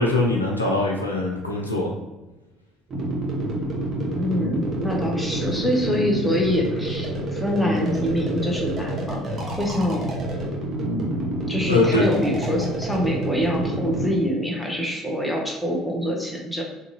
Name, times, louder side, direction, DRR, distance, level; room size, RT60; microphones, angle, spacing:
voice 1, 0.0-1.9 11.7-12.1, left 2 dB, 85° left, -1 dB, 0.5 m, -22 dB
sound 1, 2.9-14.1, right 1 dB, 40° right, 0.9 m, -28 dB
voice 2, 4.2-9.3 9.6-10.2 11.5-16.6, equal, 5° left, -1 dB, 0.9 m, -25 dB
3.8 x 2.9 x 2.6 m, 1.1 s
figure-of-eight pair, 60°, 0 cm